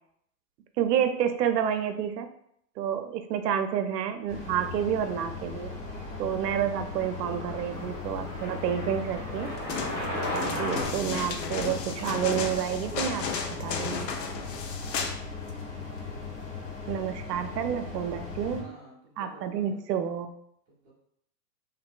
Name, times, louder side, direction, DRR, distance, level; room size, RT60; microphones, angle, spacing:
voice 1, 0.8-2.3 2.8-5.7 6.2-9.5 10.3-13.3 13.6-14.1 16.9-18.7 19.2-20.3, right 9 dB, 75° right, 8 dB, 0.5 m, -29 dB
sound 1, 4.3-18.6, left 4 dB, 50° left, 1.2 m, -38 dB
sound 2, 4.7-10.8, left 1 dB, 20° left, 0.7 m, -37 dB
sound 3, 9.6-15.2 15.5-15.6, left 5 dB, 80° left, 0.6 m, -34 dB
voice 2, 18.6-19.8 20.7-20.9, right 2 dB, 15° right, -11 dB, 0.5 m, -54 dB
3.1 x 2.5 x 2.2 m, 0.72 s
hypercardioid pair, 160°, 49 cm